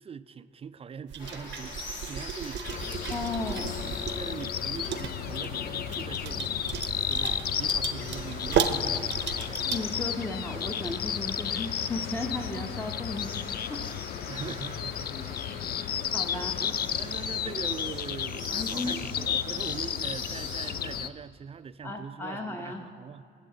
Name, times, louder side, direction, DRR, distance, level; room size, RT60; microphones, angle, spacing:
voice 1, 0.0-3.2 3.8-9.7 10.5-10.6 14.3-15.1 15.6-15.9 16.3-23.2, right 6 dB, 30° right, 0.3 m, -42 dB
sound 1, 1.1-10.0, right 8 dB, 65° right, 0.7 m, -35 dB
sound 2, 1.2-20.7, left 2 dB, 70° left, 2.2 m, -44 dB
sound 3, 2.6-21.1, left 9 dB, 50° left, 0.4 m, -33 dB
voice 2, 3.1-3.8 9.6-13.4 13.7-13.9 15.1-15.4 16.1-16.5 18.5-19.0 21.8-22.8, left 2 dB, 10° left, 0.8 m, -35 dB
18.0 x 7.8 x 3.8 m
cardioid pair, 90°, 20 cm